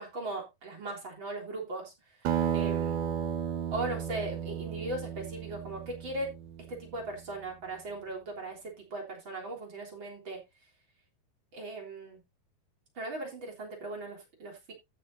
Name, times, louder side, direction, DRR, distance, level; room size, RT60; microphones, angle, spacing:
voice 1, 0.0-3.0 3.7-6.3 6.7-10.4 11.5-12.2 13.0-14.7, right 2 dB, 30° right, 0 dB, 3.9 m, -38 dB
Acoustic guitar, 2.3-7.1, right 9 dB, 65° right, 2.5 m, -33 dB
15.5 x 7.0 x 2.7 m, 0.22 s
omnidirectional pair, 4.4 m